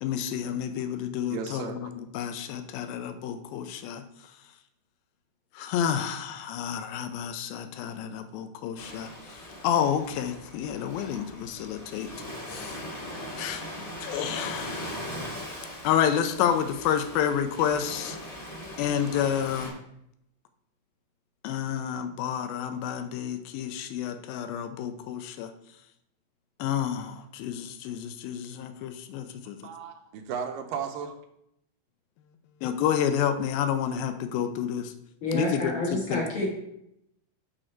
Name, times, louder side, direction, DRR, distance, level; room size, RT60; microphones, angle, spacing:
voice 1, 0.0-4.0 5.6-9.1 9.6-12.1 12.5-12.8 13.4-13.6 14.0-15.0 15.8-18.2 18.8-19.7 21.4-25.5 26.6-29.6 32.6-34.9 35.3-35.7 36.1-36.2, left 9 dB, 85° left, 9 dB, 2.4 m, -29 dB
voice 2, 1.3-1.9 29.6-31.2, right 7 dB, 80° right, 6 dB, 2.1 m, -35 dB
Ocean, 8.8-19.7, equal, 25° left, 1.7 m, -40 dB
voice 3, 35.2-36.5, left 1 dB, 45° left, -3 dB, 1.8 m, -28 dB
6.4 x 6.3 x 4.4 m, 0.77 s
omnidirectional pair, 4.2 m